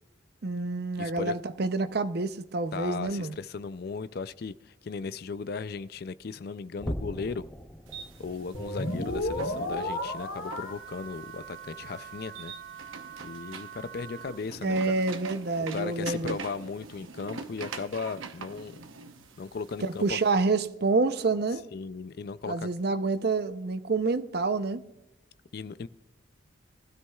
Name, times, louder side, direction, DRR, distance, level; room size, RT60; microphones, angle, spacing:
voice 1, 0.4-3.3 14.6-16.4 19.8-21.6 22.5-24.8, right 3 dB, 50° right, 0.6 m, -28 dB
voice 2, 1.0-1.3 2.7-7.5 8.2-12.5 13.2-14.9 15.7-18.8 19.4-20.2 21.7-22.7 25.5-25.9, left 4 dB, 50° left, 0.4 m, -36 dB
sound 1, 6.8-13.4 13.8-14.1 14.5-14.6 15.2-15.3, equal, 5° left, 0.7 m, -43 dB
sound 2, 7.9-20.3, right 4 dB, 80° right, 0.9 m, -44 dB
sound 3, 8.5-14.3, equal, 65° left, 2.7 m, -36 dB
20.0 x 12.5 x 2.3 m
head